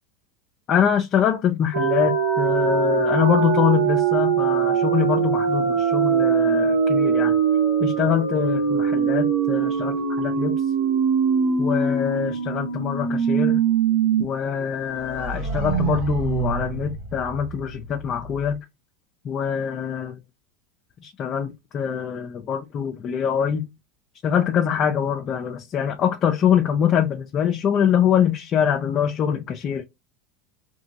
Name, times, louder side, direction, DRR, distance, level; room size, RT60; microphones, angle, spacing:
voice 1, 0.7-7.4 7.8-10.6 11.6-13.6 14.2-18.6 19.2-20.2 21.0-23.7 24.2-29.8, left 8 dB, 40° left, 0.4 m, -24 dB
sound 1, 1.7-14.2 14.6-14.7 15.0-17.7, right 6 dB, 70° right, 1.7 m, -22 dB
2.9 x 2.6 x 2.7 m
supercardioid pair, 115°, 0 cm